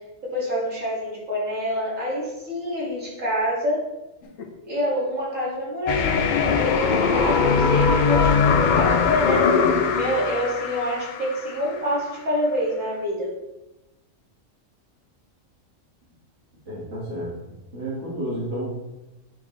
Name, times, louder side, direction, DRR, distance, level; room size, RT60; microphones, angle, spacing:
voice 1, 0.2-3.9 4.6-8.4 8.8-9.6 9.9-13.3, equal, 80° right, -7 dB, 2.9 m, -27 dB
sound 1, 4.2-4.5 6.6-8.2, left 2 dB, 90° left, 1.3 m, -31 dB
sound 2, 5.9-11.8, left 5 dB, 55° left, 0.5 m, -21 dB
voice 2, 16.6-18.7, right 1 dB, 65° right, -9 dB, 2.4 m, -31 dB
9.0 x 5.0 x 3.3 m, 0.99 s
omnidirectional pair, 1.3 m